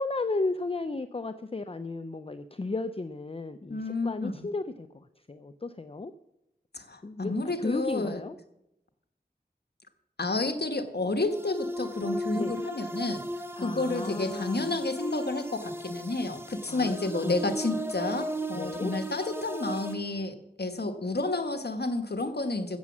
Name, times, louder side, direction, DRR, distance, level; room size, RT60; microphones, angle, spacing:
voice 1, 0.0-6.1 7.0-8.4 12.3-12.6 13.6-14.8 16.7-16.9 17.2-17.4 18.5-18.9, left 3 dB, 30° left, 10 dB, 0.5 m, -34 dB
voice 2, 3.7-4.5 6.7-8.2 10.2-13.2 13.6-22.8, left 2 dB, 65° left, 7 dB, 1.3 m, -30 dB
sound 1, 11.3-19.9, right 1 dB, 15° right, 1.1 m, -36 dB
14.5 x 7.2 x 7.3 m, 0.86 s
wide cardioid pair, 55°, 18 cm